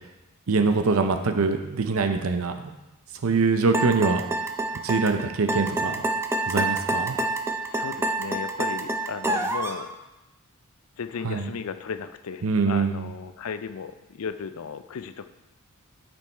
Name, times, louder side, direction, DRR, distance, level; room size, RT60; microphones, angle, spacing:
voice 1, 0.5-2.7 3.2-4.2 4.8-6.0 6.5-7.2 11.2-11.5 12.4-13.1, right 4 dB, 65° right, 7 dB, 0.6 m, -24 dB
sound 1, 3.7-9.8, right 2 dB, 10° right, 0.5 m, -27 dB
voice 2, 7.7-9.9 11.0-15.3, left 6 dB, 75° left, 11 dB, 0.5 m, -35 dB
8.3 x 5.4 x 4.5 m, 1.0 s
head